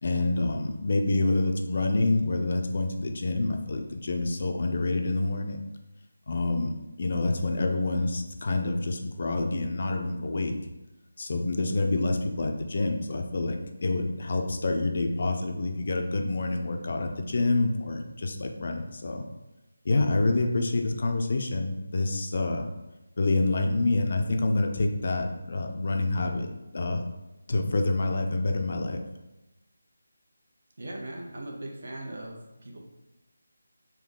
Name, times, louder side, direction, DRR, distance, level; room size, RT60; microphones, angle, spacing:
voice 1, 0.0-5.6 6.3-10.5 11.2-19.3 19.8-22.7 23.2-27.0 27.5-29.0, left 2 dB, 50° left, 4 dB, 0.5 m, -27 dB
voice 2, 30.8-32.8, right 1 dB, 60° right, 0 dB, 0.9 m, -39 dB
3.7 x 2.3 x 3.6 m, 1.0 s
figure-of-eight pair, 165°, 0 cm